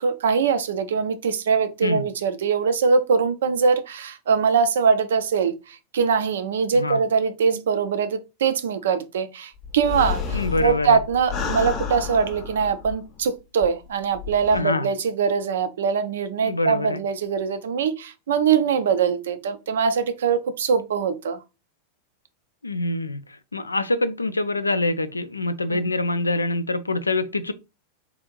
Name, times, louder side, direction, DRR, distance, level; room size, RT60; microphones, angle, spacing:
voice 1, 0.0-21.4 25.7-25.8, right 6 dB, 60° right, 0.4 m, -22 dB
sound 1, 9.6-13.2 13.6-13.7 14.1-14.6, left 6 dB, 35° left, 0.6 m, -30 dB
voice 2, 10.3-11.0 14.5-14.9 16.4-17.0 22.6-23.2 23.5-27.5, left 2 dB, 80° left, 0.3 m, -25 dB
3.5 x 2.4 x 3.0 m
figure-of-eight pair, 90°, 0 cm